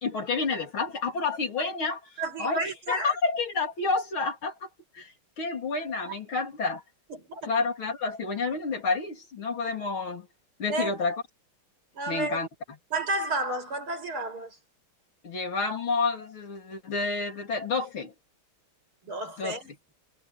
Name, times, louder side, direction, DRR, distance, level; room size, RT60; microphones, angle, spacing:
voice 1, 0.0-2.0 2.4-2.6 2.9-4.7 4.9-5.1 5.4-6.8 7.5-10.3 10.6-11.2 12.1-12.8 15.2-18.1 19.4-19.6, left 4 dB, 70° left, 4.2 m, -29 dB
voice 2, 2.2-3.2 7.1-7.5 10.7-10.9 12.0-12.4 12.9-14.6 19.1-19.7, right 2 dB, 75° right, 9.0 m, -31 dB
omnidirectional pair, 2.4 m